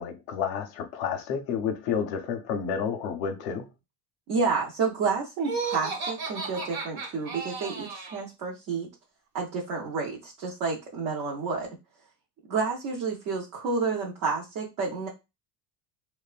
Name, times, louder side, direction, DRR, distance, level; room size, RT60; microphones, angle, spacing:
voice 1, 0.0-3.7, left 7 dB, 60° left, 0.6 m, -30 dB
voice 2, 4.3-8.9 9.3-11.7 12.5-15.1, right 4 dB, 40° right, 0.5 m, -30 dB
Laughter, 5.4-8.2, right 4 dB, 60° right, 1.0 m, -34 dB
2.9 x 2.1 x 2.3 m
cardioid pair, 180°, 50 cm